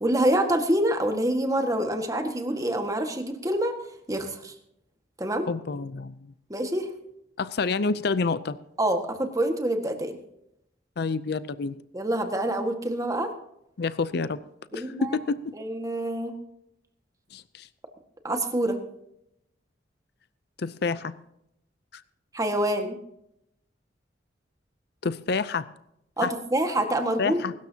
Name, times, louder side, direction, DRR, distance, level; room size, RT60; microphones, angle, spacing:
voice 1, 0.0-3.8 4.1-4.5 5.2-5.5 6.5-6.9 8.8-10.2 11.9-13.3 14.7-15.2 15.5-16.4 18.2-18.8 22.3-23.0 26.2-27.4, right 1 dB, 20° right, 5 dB, 1.6 m, -26 dB
voice 2, 5.5-6.1 7.4-8.6 11.0-11.8 13.8-14.4 14.7-15.5 17.3-17.7 20.6-21.1 21.9-22.0 25.0-25.7 26.2-26.3 27.2-27.5, left 4 dB, 60° left, 15 dB, 0.5 m, -28 dB
23.5 x 13.0 x 2.8 m, 0.80 s
head